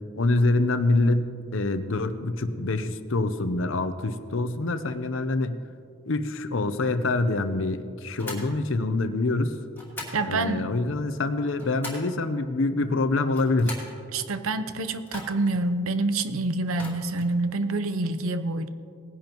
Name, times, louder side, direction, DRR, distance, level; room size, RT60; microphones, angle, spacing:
voice 1, 0.2-5.6 6.1-9.6 10.3-13.8, left 2 dB, 65° left, 11 dB, 0.7 m, -25 dB
sound 1, 8.2-8.5 9.7-10.2 11.3-12.1 13.2-14.0 15.0-15.6 16.7-17.3, left 2 dB, 10° left, 2.4 m, -40 dB
voice 2, 10.1-10.7 14.1-18.7, right 2 dB, 80° right, 10 dB, 0.7 m, -27 dB
19.0 x 10.5 x 3.0 m, 2.3 s
head